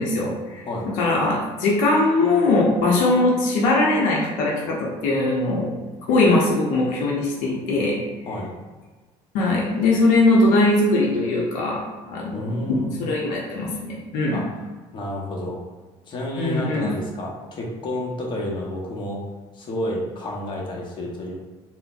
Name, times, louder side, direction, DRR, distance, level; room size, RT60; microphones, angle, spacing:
voice 1, 0.0-5.7 6.1-8.0 9.3-14.4 16.4-16.9, left 2 dB, 85° left, -3 dB, 0.7 m, -21 dB
voice 2, 8.2-8.6 12.3-13.1 14.3-14.6 14.9-15.6 16.1-19.2 19.5-21.4, left 1 dB, 40° left, -2 dB, 0.8 m, -30 dB
3.8 x 2.1 x 2.5 m, 1.3 s
cardioid pair, 100°, 12 cm